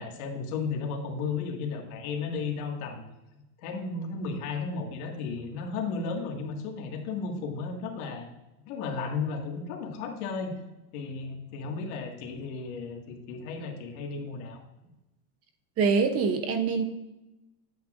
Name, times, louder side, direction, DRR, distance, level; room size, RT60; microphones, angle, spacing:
voice 1, 0.0-3.0 3.6-8.3 8.6-10.5 10.9-14.6, left 4 dB, 75° left, 2 dB, 1.9 m, -34 dB
voice 2, 15.8-16.8, right 5 dB, 30° right, 8 dB, 0.8 m, -24 dB
10.0 x 8.1 x 2.5 m, 0.98 s
cardioid pair, 155°, 44 cm